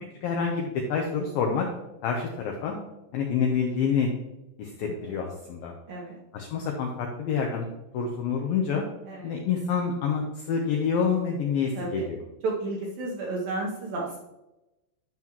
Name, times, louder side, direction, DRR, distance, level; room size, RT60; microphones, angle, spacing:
voice 1, 0.2-1.7 2.0-2.8 3.1-4.1 4.6-5.7 6.3-7.7 7.9-8.9 9.2-12.2, left 6 dB, 90° left, 1 dB, 2.0 m, -27 dB
voice 2, 4.8-5.1 5.9-6.2 9.1-9.4 11.8-12.1 12.4-14.2, right 2 dB, 75° right, -2 dB, 2.2 m, -32 dB
11.0 x 5.7 x 3.0 m, 0.95 s
omnidirectional pair, 5.2 m